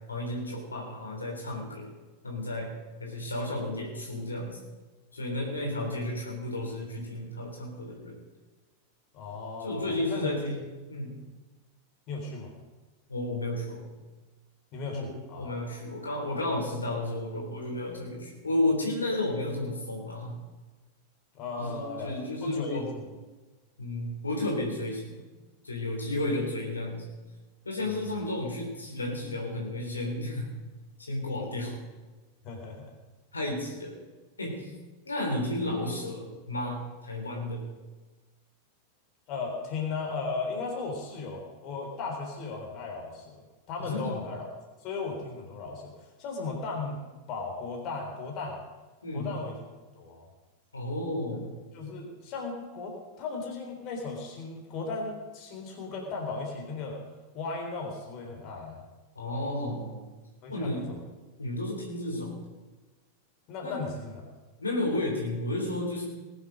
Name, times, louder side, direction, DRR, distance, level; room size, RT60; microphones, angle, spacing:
voice 1, 0.1-1.9 2.2-2.7 3.0-4.6 5.1-8.2 9.6-10.6 10.9-11.2 13.1-13.9 14.9-20.4 21.6-22.9 23.8-25.2 25.6-27.1 27.7-30.5 31.0-31.8 33.3-34.0 34.4-34.7 35.1-37.7 43.8-44.2 49.0-49.3 50.7-51.6 59.2-60.0 60.5-60.9 61.4-62.4 63.6-63.8 64.6-66.0, left 1 dB, 75° left, -1 dB, 3.5 m, -32 dB
voice 2, 9.1-10.3 12.1-12.5 14.7-15.7 21.3-22.1 22.4-22.8 27.8-28.1 32.4-32.9 39.3-43.4 43.7-44.5 44.8-47.0 47.3-48.6 49.1-49.6 50.0-50.2 51.7-57.0 57.3-58.8 60.4-61.0 63.5-64.2, left 4 dB, 40° left, 1 dB, 3.7 m, -36 dB
20.0 x 7.9 x 6.4 m, 1.2 s
figure-of-eight pair, 90°, 0 cm